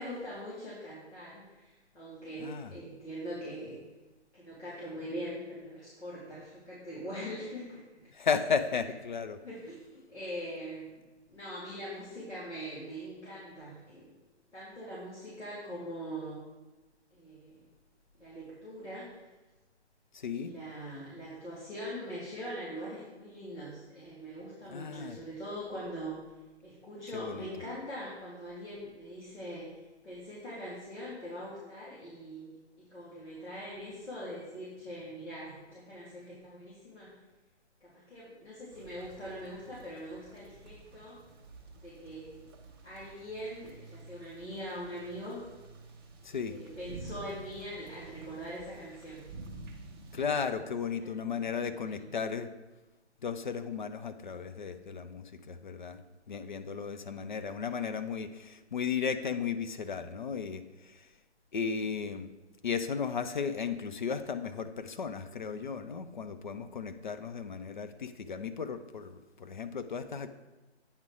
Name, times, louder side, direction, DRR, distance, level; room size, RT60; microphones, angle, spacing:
voice 1, 0.0-3.8 4.3-8.1 9.4-11.0 11.3-14.2 14.5-16.4 17.1-17.6 18.1-19.1 20.3-26.2 26.6-29.7 30.0-37.1 37.8-41.2 41.7-42.4 42.8-45.4 46.4-49.2 50.3-50.4 51.0-51.5 51.8-52.1, equal, 80° left, -8 dB, 2.6 m, -42 dB
voice 2, 2.4-2.7 8.1-9.4 20.1-20.5 24.7-25.2 27.1-27.5 46.2-46.6 50.1-52.5 53.2-61.1 61.5-62.3 62.6-70.3, left 6 dB, 45° left, 10 dB, 0.5 m, -35 dB
sound 1, 38.7-50.2, right 3 dB, 20° right, 0.7 m, -50 dB
8.7 x 3.9 x 4.8 m, 1.1 s
figure-of-eight pair, 145°, 35 cm